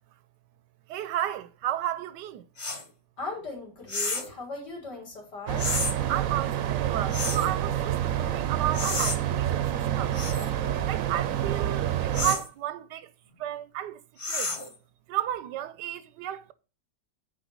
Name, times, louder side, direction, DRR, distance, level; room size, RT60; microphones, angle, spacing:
voice 1, 0.9-2.5 6.1-10.1 10.9-13.1 13.4-14.0 14.3-14.5 15.1-16.5, right 12 dB, 80° right, 1.2 m, -32 dB
sound 1, 2.6-2.8 3.9-4.3 5.6-5.9 7.1-7.5 8.7-9.2 10.1-10.5 12.1-12.5 14.2-14.7, left 3 dB, 25° left, 0.7 m, -31 dB
voice 2, 3.2-5.7, left 3 dB, 70° left, 3.8 m, -38 dB
sound 2, 5.5-12.4, right 11 dB, 60° right, 0.9 m, -28 dB
9.9 x 3.6 x 6.6 m
omnidirectional pair, 1.9 m